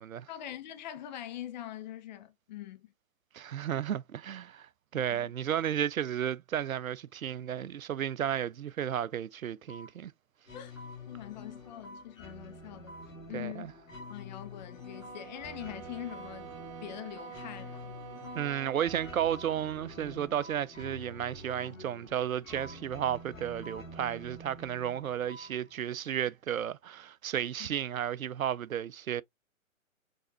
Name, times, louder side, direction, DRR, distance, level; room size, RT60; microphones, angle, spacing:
voice 1, 0.3-2.9 5.1-5.3 10.5-10.8 11.1-13.0 13.3-13.7 14.1-16.5 16.8-17.9 27.6-27.7, left 12 dB, 35° left, 0.8 m, -43 dB
voice 2, 3.3-10.1 13.3-13.7 18.3-29.2, right 10 dB, 85° right, 0.5 m, -33 dB
sound 1, 8.5-8.7 9.7-9.9 10.8-11.0 11.8-12.1 12.9-13.1 13.9-14.2 15.0-15.3 16.1-16.4 17.2-17.4 18.2-18.5 19.3-19.6 20.4-20.7 21.5-21.7 22.5-22.8 23.6-23.9 25.1-25.5 26.0-26.1, right 1 dB, 5° right, 2.5 m, -48 dB
sound 2, 10.5-26.0, left 2 dB, 70° left, 2.1 m, -48 dB
sound 3, 14.7-19.5, right 9 dB, 25° right, 0.6 m, -48 dB
5.4 x 3.4 x 2.7 m
figure-of-eight pair, 125°, 40 cm